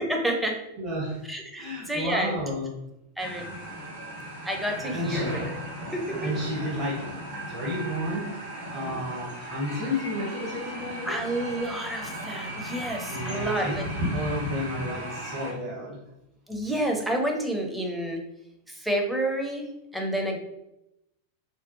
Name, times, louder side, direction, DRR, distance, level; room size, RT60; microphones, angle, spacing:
voice 1, 0.0-0.6 1.3-2.3 3.2-3.5 4.4-5.6 5.9-6.4 11.1-13.8 16.5-18.2 18.7-19.7 19.9-20.4, right 1 dB, 5° right, 1 dB, 0.5 m, -29 dB
voice 2, 0.8-1.2 1.6-2.7 4.8-5.3 6.2-7.1 7.5-8.3 8.7-11.3 13.0-13.8 14.1-16.0, left 1 dB, 40° right, -5 dB, 0.7 m, -31 dB
sound 1, 3.2-15.5, equal, 55° right, 1.3 m, -35 dB
2.7 x 2.0 x 2.4 m, 0.87 s
figure-of-eight pair, 90°, 0 cm